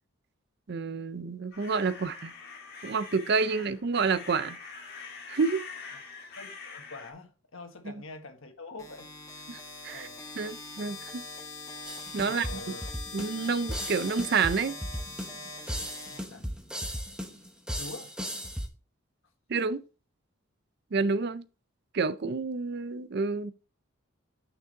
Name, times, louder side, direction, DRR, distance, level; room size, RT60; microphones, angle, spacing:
voice 1, 0.7-2.3 2.8-4.6 5.3-5.7 9.5-10.1 10.4-11.2 12.1-12.8 13.1-14.8 19.5-19.8 20.9-21.4 21.9-23.5, right 4 dB, 50° right, 0.5 m, -29 dB
sound 1, 1.5-7.1, left 4 dB, 50° left, 1.7 m, -44 dB
voice 2, 6.4-9.1 9.9-10.1 12.2-12.9 16.1-16.5 17.8-18.1, left 2 dB, 80° left, 1.3 m, -45 dB
sound 2, 8.8-16.8, left 3 dB, 15° left, 1.7 m, -43 dB
sound 3, 11.8-18.7, equal, 5° right, 0.8 m, -36 dB
6.3 x 6.0 x 3.9 m
head